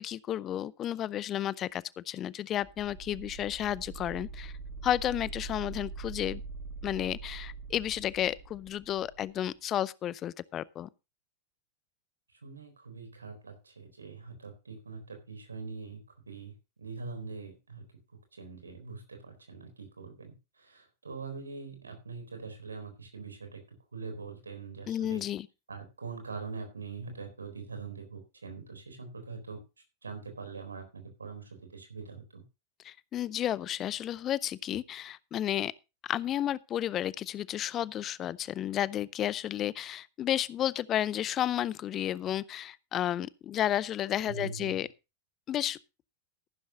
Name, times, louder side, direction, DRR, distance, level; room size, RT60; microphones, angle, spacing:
voice 1, 0.0-4.5 4.8-6.4 6.8-10.9 24.9-25.5 32.8-35.7 36.0-44.9 45.5-45.8, left 11 dB, 30° left, 0.5 m, -32 dB
sound 1, 2.6-9.3, right 4 dB, 25° right, 4.1 m, -43 dB
voice 2, 12.4-17.8 18.3-23.6 23.9-25.2 25.7-29.6 30.0-32.4 44.3-44.8, right 4 dB, 75° right, 3.9 m, -43 dB
14.0 x 12.0 x 2.9 m
figure-of-eight pair, 90°, 0 cm